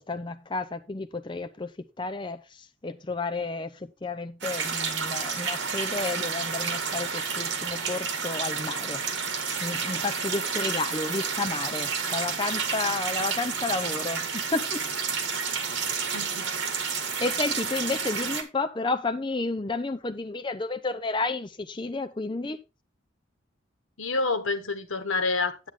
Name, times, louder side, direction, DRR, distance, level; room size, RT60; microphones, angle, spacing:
voice 1, 0.0-1.7 2.0-9.0 9.6-14.8 17.2-22.6, left 3 dB, 25° left, 0.5 m, -31 dB
sound 1, 4.4-18.4, right 5 dB, 60° right, 1.8 m, -30 dB
voice 2, 16.1-16.5 24.0-25.7, left 3 dB, 90° left, 1.4 m, -28 dB
8.9 x 8.9 x 3.5 m
head